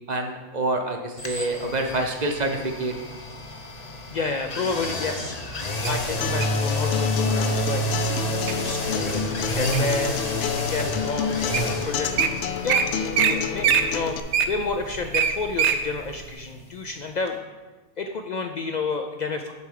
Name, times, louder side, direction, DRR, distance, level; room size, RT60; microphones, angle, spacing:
voice 1, 0.1-2.9, right 2 dB, 40° right, 4 dB, 0.8 m, -27 dB
sound 1, 1.2-17.0 17.3-17.4, left 1 dB, 40° left, 0.8 m, -30 dB
voice 2, 4.1-12.8 13.2-14.2 14.5-17.3 18.0-19.5, left 3 dB, 60° left, 5 dB, 0.4 m, -31 dB
Wild animals, 5.8-6.6 7.3-7.6 8.1-8.5 9.0-10.0 10.6-10.7 11.3-11.4 11.5-11.7 12.0-12.3 12.7-12.8 13.1-13.3 13.6-15.8 16.2-16.3, right 8 dB, 75° right, 0.9 m, -22 dB
Acoustic guitar, 6.2-14.2, left 8 dB, 75° left, 0.9 m, -29 dB
6.8 x 4.7 x 6.4 m, 1.2 s
omnidirectional pair, 1.2 m